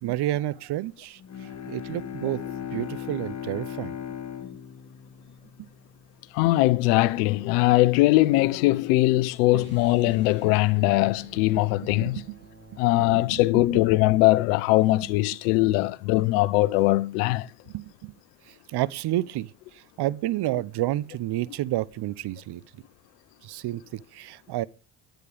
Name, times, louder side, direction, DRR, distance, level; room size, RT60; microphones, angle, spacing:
voice 1, 0.0-2.4 2.7-3.9 5.6-5.7 9.5-9.7 10.1-10.2 11.6-12.4 13.0-13.8 17.7-18.1 18.5-22.6 23.4-24.7, right 15 dB, 60° right, 0.8 m, -31 dB
Bowed string instrument, 1.2-6.0, left 9 dB, 35° left, 1.9 m, -37 dB
voice 2, 6.3-12.2 12.8-17.5, left 18 dB, 85° left, 0.9 m, -21 dB
sound 1, 9.5-15.6, right 1 dB, 25° right, 6.3 m, -49 dB
10.5 x 9.2 x 5.0 m
hypercardioid pair, 60°, 45 cm